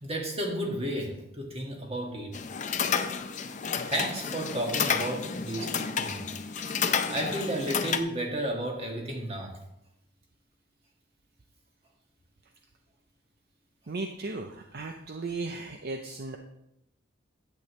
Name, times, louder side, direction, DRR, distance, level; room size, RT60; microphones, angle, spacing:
voice 1, 0.0-2.3 3.9-6.2 7.1-9.6, right 1 dB, 30° right, 0 dB, 1.9 m, -32 dB
clock scape bad iburg, 2.3-8.0, left 6 dB, 40° left, 0.5 m, -30 dB
voice 2, 13.9-16.4, right 3 dB, 55° right, 4 dB, 0.6 m, -36 dB
10.5 x 8.5 x 3.1 m, 0.83 s
head